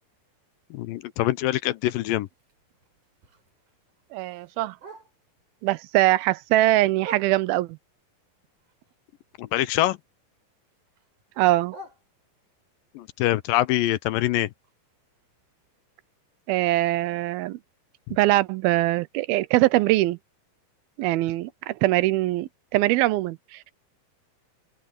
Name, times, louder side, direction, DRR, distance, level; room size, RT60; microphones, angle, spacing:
voice 1, 0.7-2.3 9.4-10.0 13.0-14.5 18.1-18.2, left 15 dB, 80° left, 2.3 m, -24 dB
Bark, 2.3-5.5 5.9-7.8 8.2-10.1 10.3-12.6 13.1-17.0 17.3-17.4 17.7-18.1 18.6-18.7 19.0-19.1 19.6-19.7, right 5 dB, 55° right, 6.2 m, -49 dB
voice 2, 4.1-4.8 5.6-7.8 11.4-11.7 16.5-17.6 18.1-20.2 21.0-23.7, right 17 dB, 85° right, 2.6 m, -22 dB
open air
omnidirectional pair, 4.2 m